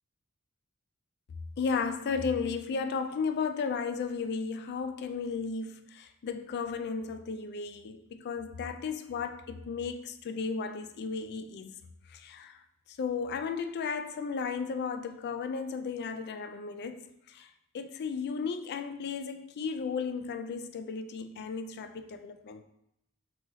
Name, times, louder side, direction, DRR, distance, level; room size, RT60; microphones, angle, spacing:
voice 1, 1.6-11.7 12.1-12.6 12.9-17.5 17.7-22.6, left 5 dB, 50° left, 0.3 m, -34 dB
4.0 x 2.9 x 3.8 m
head